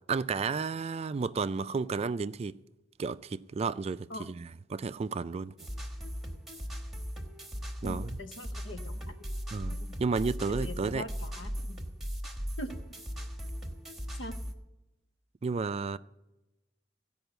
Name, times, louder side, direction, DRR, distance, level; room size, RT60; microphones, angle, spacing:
voice 1, 0.1-2.5 3.0-5.5 7.8-8.2 9.5-9.7 10.0-11.0 15.4-16.0, right 4 dB, 35° right, 0.3 m, -32 dB
sound 1, 5.6-14.5, equal, ahead, 1.4 m, -38 dB
voice 2, 7.8-9.2 9.8-9.9 10.6-11.8 12.6-12.7 14.2-14.4, left 1 dB, 80° left, 0.9 m, -42 dB
16.5 x 5.5 x 8.0 m
head